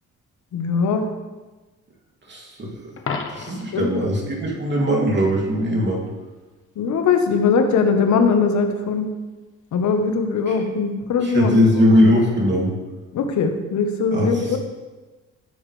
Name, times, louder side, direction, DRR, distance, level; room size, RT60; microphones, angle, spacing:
voice 1, 0.5-1.1 3.7-3.9 6.8-9.1 9.7-11.6 13.1-14.6, left 5 dB, 70° left, 5 dB, 1.3 m, -20 dB
voice 2, 2.3-2.7 3.3-6.0 10.5-10.6 11.2-12.7 14.1-14.4, equal, 35° right, -2 dB, 2.7 m, -19 dB
Coin (dropping), 3.0-3.8 9.9-10.1, left 5 dB, 45° left, 1.2 m, -31 dB
13.5 x 7.3 x 3.4 m, 1.2 s
cardioid pair, 90°, 30 cm